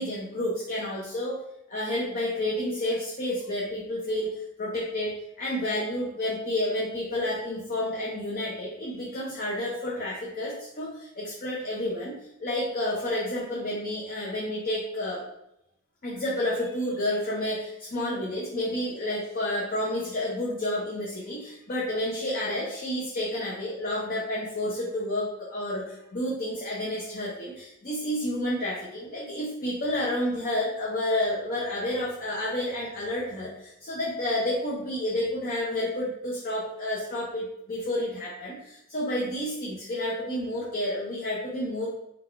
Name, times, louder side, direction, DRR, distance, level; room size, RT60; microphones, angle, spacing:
voice 1, 0.0-1.4 1.7-15.2 16.0-41.9, left 1 dB, 40° left, -5 dB, 0.6 m, -30 dB
4.0 x 2.3 x 4.4 m, 0.83 s
head